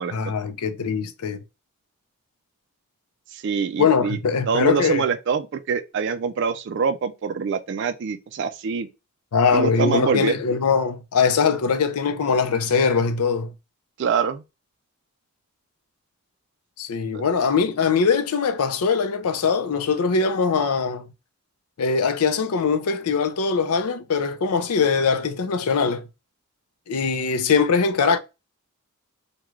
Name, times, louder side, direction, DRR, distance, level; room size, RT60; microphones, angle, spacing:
voice 1, 0.1-1.4 3.8-5.0 9.3-13.5 16.8-21.1 21.8-26.1 26.9-28.2, left 5 dB, 80° left, 0.5 m, -22 dB
voice 2, 3.3-4.2 4.5-8.9 9.5-10.4 14.0-14.4 17.1-17.2, right 6 dB, 50° right, 0.3 m, -25 dB
3.1 x 2.2 x 3.5 m
head